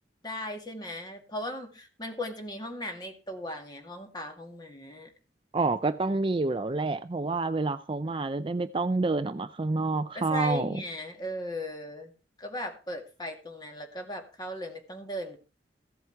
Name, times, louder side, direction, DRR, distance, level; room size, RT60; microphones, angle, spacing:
voice 1, 0.2-5.1 10.1-12.1 12.4-15.4, left 1 dB, 25° left, 2.2 m, -37 dB
voice 2, 5.5-10.7, right 3 dB, 30° right, 0.5 m, -28 dB
15.0 x 7.8 x 4.6 m
head